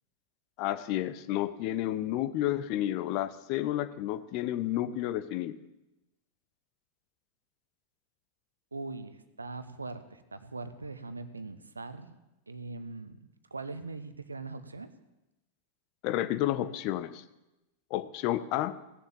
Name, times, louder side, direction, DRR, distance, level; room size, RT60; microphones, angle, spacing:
voice 1, 0.6-5.6 16.0-17.2 17.9-18.8, left 13 dB, 45° left, 13 dB, 0.7 m, -31 dB
voice 2, 8.7-12.2 12.5-13.2 13.5-14.9, right 3 dB, 80° right, 12 dB, 0.9 m, -41 dB
16.5 x 7.2 x 7.1 m, 0.97 s
figure-of-eight pair, 90°, 0 cm